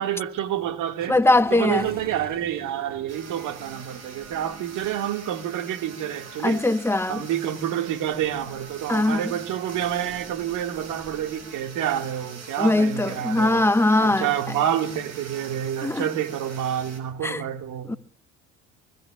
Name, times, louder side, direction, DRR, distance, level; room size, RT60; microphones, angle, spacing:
voice 1, 0.0-1.2 1.5-6.7 7.1-13.7 14.0-17.9, right 10 dB, 70° right, 2.0 m, -28 dB
sound 1, 1.0-12.0, right 3 dB, 30° right, 4.0 m, -48 dB
voice 2, 1.1-1.9 6.4-7.2 8.9-9.3 12.6-14.3 15.8-16.1 17.2-17.4 17.9-18.0, left 2 dB, 5° left, 1.1 m, -21 dB
sound 2, 3.1-17.0, right 4 dB, 50° right, 5.7 m, -43 dB
24.0 x 23.5 x 2.4 m
supercardioid pair, 75°, 32 cm